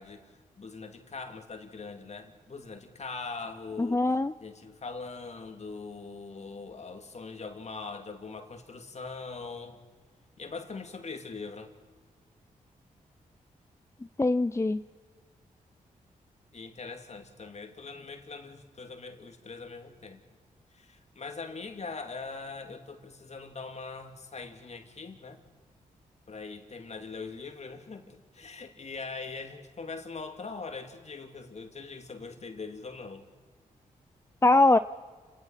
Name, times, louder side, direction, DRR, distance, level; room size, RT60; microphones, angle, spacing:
voice 1, 0.0-4.1 4.4-9.8 10.4-11.7 16.5-20.2 20.7-25.4 26.3-33.3, left 4 dB, 50° left, 5 dB, 2.6 m, -42 dB
voice 2, 3.8-4.3 14.2-14.8 34.4-34.8, left 2 dB, 20° left, 12 dB, 0.5 m, -22 dB
29.5 x 18.5 x 5.8 m, 1.5 s
cardioid pair, 55°, 15 cm